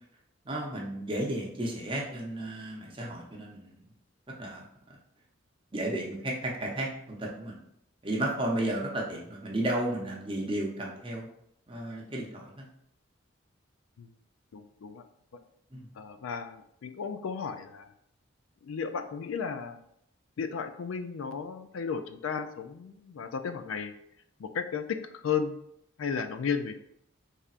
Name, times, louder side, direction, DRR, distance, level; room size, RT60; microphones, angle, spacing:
voice 1, 0.4-3.7 4.3-4.7 5.7-7.6 8.0-11.3 11.7-12.6 15.7-15.9, right 1 dB, 25° right, -2 dB, 0.7 m, -33 dB
voice 2, 14.5-15.0 16.0-17.9 18.6-19.8 20.4-24.0 24.4-25.6 26.0-26.7, left 6 dB, 85° left, 9 dB, 0.4 m, -34 dB
4.1 x 3.4 x 2.4 m, 0.73 s
head